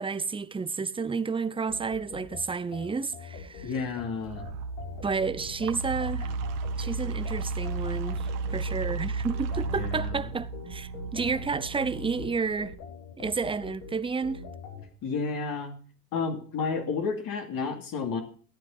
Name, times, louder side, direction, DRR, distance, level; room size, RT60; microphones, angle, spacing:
voice 1, 0.0-3.8 5.0-6.3 6.8-12.8 13.2-14.4, right 5 dB, 10° right, 0.7 m, -31 dB
sound 1, 1.7-14.8, left 5 dB, 70° left, 6.8 m, -44 dB
voice 2, 3.6-4.5 9.7-10.2 15.0-15.7 16.1-18.2, left 5 dB, 45° left, 2.8 m, -31 dB
sound 2, 4.1-12.7, right 3 dB, 65° right, 2.0 m, -34 dB
13.5 x 9.3 x 5.5 m
supercardioid pair, 105°, 47 cm